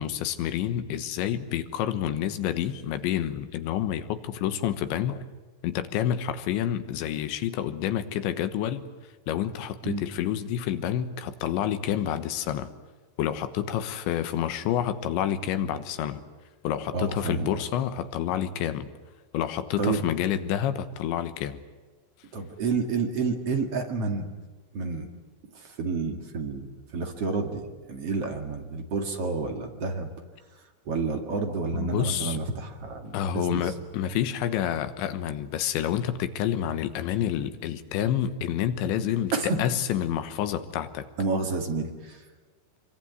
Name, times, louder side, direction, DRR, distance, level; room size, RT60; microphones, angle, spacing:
voice 1, 0.0-5.2 5.6-8.9 9.3-12.7 13.2-16.2 16.6-18.9 19.3-21.6 31.7-32.4 33.1-41.1, left 10 dB, 90° left, 11 dB, 3.6 m, -28 dB
voice 2, 16.9-17.6 19.8-20.0 22.3-24.3 24.7-25.1 25.5-30.1 30.9-33.6 39.3-39.6 41.2-42.2, right 4 dB, 45° right, 4 dB, 2.3 m, -29 dB
25.5 x 23.5 x 9.4 m, 1.3 s
omnidirectional pair, 5.1 m